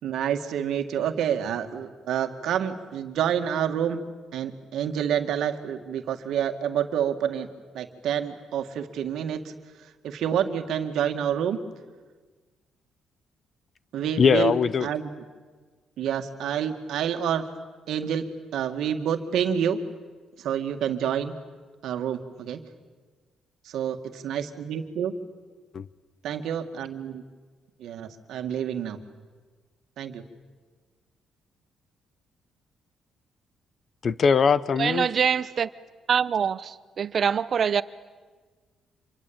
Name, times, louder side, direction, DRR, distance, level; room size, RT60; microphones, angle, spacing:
voice 1, 0.0-4.0 4.3-7.5 7.7-9.5 10.0-11.6 13.9-14.5 14.8-15.2 16.0-17.4 17.9-19.8 20.4-21.3 21.8-22.6 23.7-25.1 26.2-27.2 27.8-29.0 30.0-30.2, right 9 dB, 75° right, 2.0 m, -28 dB
voice 2, 14.2-14.9 25.7-25.9 34.0-35.1, left 6 dB, 50° left, 0.8 m, -21 dB
voice 3, 34.8-35.7 36.1-37.8, right 7 dB, 50° right, 0.9 m, -24 dB
26.5 x 24.0 x 8.8 m
cardioid pair, 90°, 0 cm